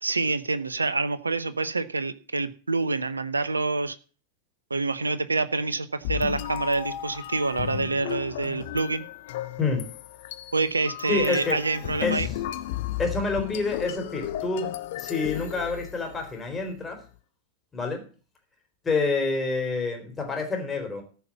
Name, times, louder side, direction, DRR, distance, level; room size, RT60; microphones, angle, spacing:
voice 1, 0.0-4.0 4.7-9.1 10.5-12.3, right 3 dB, 80° right, 0.9 m, -27 dB
sound 1, 6.0-16.3, left 13 dB, 55° left, 1.0 m, -34 dB
voice 2, 11.1-11.6 12.0-12.3 13.0-14.7 15.0-17.0 17.7-18.0 18.8-21.0, left 3 dB, 15° left, 4.1 m, -28 dB
14.0 x 5.8 x 7.3 m
figure-of-eight pair, 90°, 0 cm